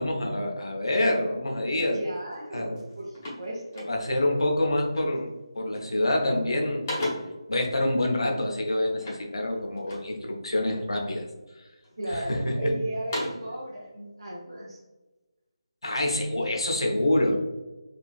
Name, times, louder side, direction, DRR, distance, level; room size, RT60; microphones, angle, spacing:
voice 1, 0.0-2.0 2.5-2.8 3.9-6.8 7.5-11.3 11.6-11.7 12.1-12.7 15.8-17.4, left 1 dB, 70° left, 1 dB, 0.8 m, -26 dB
voice 2, 1.9-3.9 12.0-14.8, right 1 dB, 60° right, -6 dB, 0.8 m, -35 dB
sound 1, 2.3-2.5 2.7-4.3 4.9-5.3 5.6-6.1 6.4-7.5 9.0-10.2 10.7-11.3 11.8-12.5 12.9-13.6, left 1 dB, 30° left, 1.1 m, -36 dB
3.9 x 2.8 x 2.4 m, 1.2 s
figure-of-eight pair, 155°, 3 cm